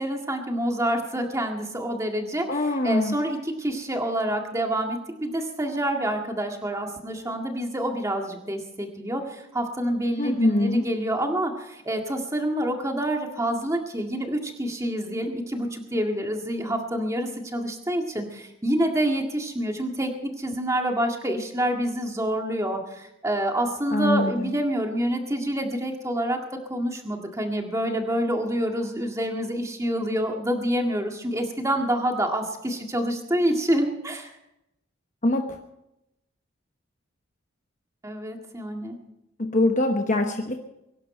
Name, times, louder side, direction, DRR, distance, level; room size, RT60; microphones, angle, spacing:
voice 1, 0.0-2.5 2.8-26.4 26.7-34.3 38.0-39.0, right 1 dB, 15° right, 3 dB, 1.9 m, -27 dB
voice 2, 2.5-3.2 10.2-10.9 23.9-24.5 35.2-35.6 39.4-40.6, left 2 dB, 40° left, 4 dB, 1.0 m, -23 dB
22.5 x 11.5 x 4.4 m, 0.87 s
head